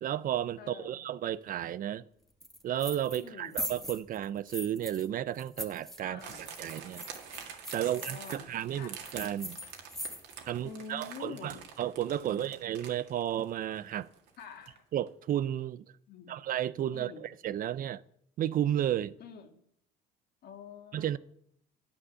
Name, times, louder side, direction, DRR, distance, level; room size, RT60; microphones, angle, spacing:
voice 1, 0.0-2.0 2.6-7.1 7.7-9.6 10.5-14.1 14.9-15.8 16.3-18.0 18.4-19.1 20.9-21.2, right 11 dB, 50° right, 0.5 m, -33 dB
voice 2, 0.6-1.0 3.2-3.6 6.0-6.5 7.8-9.0 10.6-11.6 12.2-12.5 14.4-14.8 16.1-16.3 16.9-17.3 19.2-19.6 20.4-21.2, left 6 dB, 60° left, 1.8 m, -47 dB
sound 1, 2.4-3.3 3.5-5.1 5.4-8.4 9.0-10.5, equal, ahead, 1.2 m, -41 dB
sound 2, 6.2-14.8 15.1-15.2, right 8 dB, 80° right, 2.0 m, -47 dB
9.9 x 8.7 x 6.5 m
cardioid pair, 95°, 18 cm